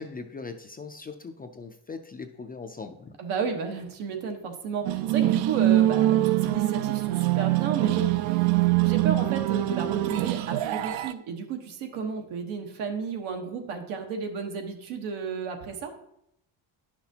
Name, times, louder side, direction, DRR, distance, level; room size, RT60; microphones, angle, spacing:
voice 1, 0.0-3.2, left 4 dB, 20° left, 6 dB, 0.3 m, -40 dB
voice 2, 3.2-15.9, right 5 dB, 90° right, 4 dB, 1.3 m, -33 dB
sound 1, 4.8-11.1, right 15 dB, 70° right, 0.5 m, -24 dB
10.5 x 6.0 x 2.8 m, 0.77 s
cardioid pair, 115°, 48 cm